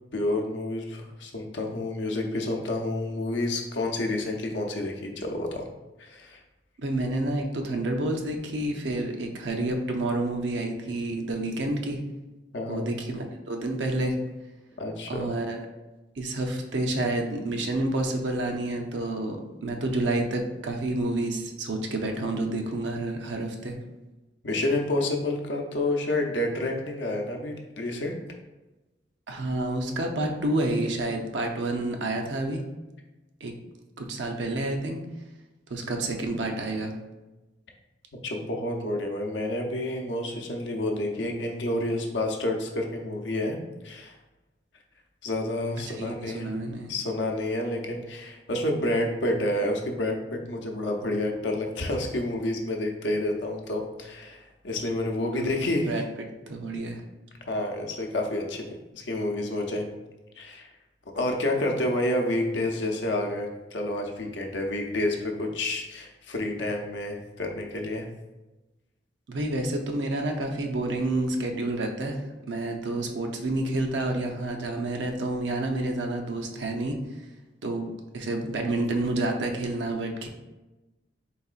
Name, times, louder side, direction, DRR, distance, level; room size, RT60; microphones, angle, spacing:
voice 1, 0.1-5.7 6.0-6.4 12.5-12.9 14.8-15.3 24.4-28.2 38.2-43.6 43.8-44.1 45.2-46.6 46.9-55.9 57.5-58.6 58.9-59.9 60.4-60.7 61.1-68.1, left 1 dB, 75° left, 2 dB, 0.6 m, -29 dB
voice 2, 6.8-12.0 12.7-14.2 15.1-15.7 16.2-23.8 29.3-32.6 33.4-33.5 34.0-35.0 35.7-37.0 45.9-46.9 55.4-57.0 69.3-72.2 72.5-77.0 77.6-80.3, right 2 dB, 75° right, 3 dB, 0.6 m, -29 dB
4.0 x 3.7 x 2.4 m, 1.1 s
head